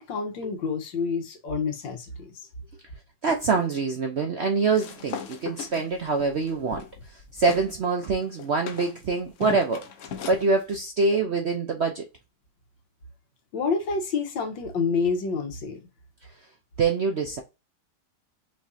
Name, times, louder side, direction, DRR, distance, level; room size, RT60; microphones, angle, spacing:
voice 1, 0.0-2.5 13.5-15.8, left 5 dB, 85° left, 1.9 m, -28 dB
voice 2, 3.2-6.9 7.3-9.9 10.3-12.0 16.8-17.4, right 4 dB, 60° right, 0.7 m, -25 dB
sound 1, 4.7-7.7 8.0-10.5, left 7 dB, 60° left, 0.8 m, -38 dB
5.1 x 3.6 x 2.7 m
omnidirectional pair, 2.0 m